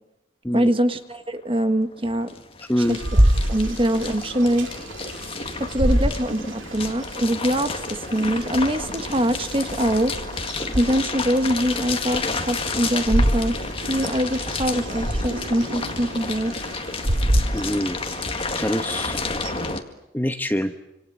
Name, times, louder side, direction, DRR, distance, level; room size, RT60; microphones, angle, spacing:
voice 1, 0.5-2.3 2.9-3.0 3.5-4.7 5.6-10.2 10.7-13.5 13.9-16.5, equal, 25° right, 9 dB, 1.5 m, -23 dB
sound 1, 1.1-1.2 1.4-19.8, left 4 dB, 25° left, 2.0 m, -31 dB
sound 2, 2.8-19.8, right 1 dB, 75° right, 2.5 m, -27 dB
voice 2, 17.5-18.0 18.6-19.2 20.1-20.7, equal, 10° left, 7 dB, 1.1 m, -24 dB
27.5 x 26.5 x 7.6 m, 0.89 s
head